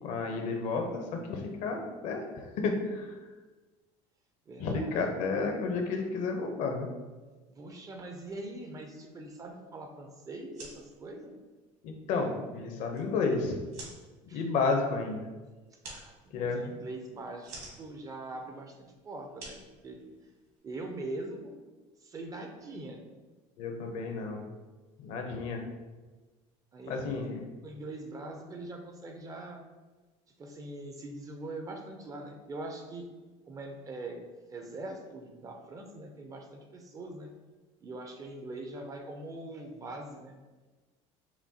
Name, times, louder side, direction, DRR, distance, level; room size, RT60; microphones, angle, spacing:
voice 1, 0.0-3.2 4.6-6.9 11.8-13.6 14.3-15.3 16.3-16.7 23.6-24.4 25.0-25.6 26.9-27.4, left 4 dB, 65° left, 3 dB, 0.7 m, -31 dB
voice 2, 4.5-5.1 7.5-11.4 14.3-14.4 15.7-20.0 20.6-21.6 22.0-23.0 26.7-27.3 27.6-29.6 30.4-33.0 33.5-34.2 34.5-37.3 37.8-40.4, right 2 dB, 25° right, 4 dB, 0.5 m, -42 dB
sound 1, 10.4-20.6, right 2 dB, 60° right, 1.5 m, -52 dB
5.8 x 2.3 x 2.7 m, 1.3 s
cardioid pair, 125°, 13 cm